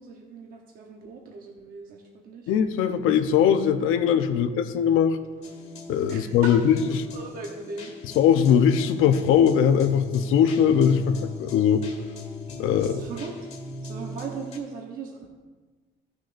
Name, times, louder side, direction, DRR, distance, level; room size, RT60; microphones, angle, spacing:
voice 1, 0.0-2.5 4.3-4.5 6.1-6.5 6.9-7.9 12.8-13.3 13.8-15.3, right 5 dB, 45° right, 0 dB, 0.9 m, -39 dB
voice 2, 2.5-5.2 5.9-7.0 8.1-11.9 12.6-13.0, left 8 dB, 75° left, 9 dB, 0.8 m, -20 dB
sound 1, 5.4-14.6, left 3 dB, 30° left, 1.8 m, -39 dB
16.5 x 6.4 x 2.6 m, 1.4 s
cardioid pair, 180°, 21 cm